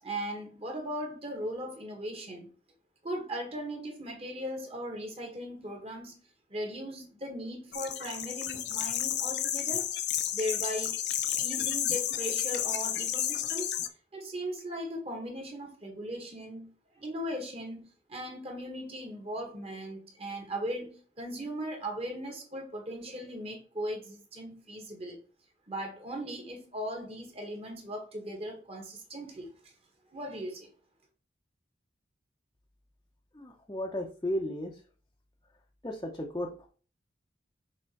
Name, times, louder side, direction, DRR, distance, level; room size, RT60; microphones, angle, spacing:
voice 1, 0.0-2.5 3.0-6.2 6.5-9.9 10.3-11.0 11.4-13.8 14.1-25.2 25.7-29.5 30.1-30.7, equal, 35° right, 1.8 m, -38 dB
sound 1, 7.7-13.9, left 10 dB, 65° left, 0.7 m, -31 dB
voice 2, 33.3-34.8 35.8-36.7, left 1 dB, 20° left, 0.8 m, -34 dB
6.1 x 3.7 x 4.5 m
head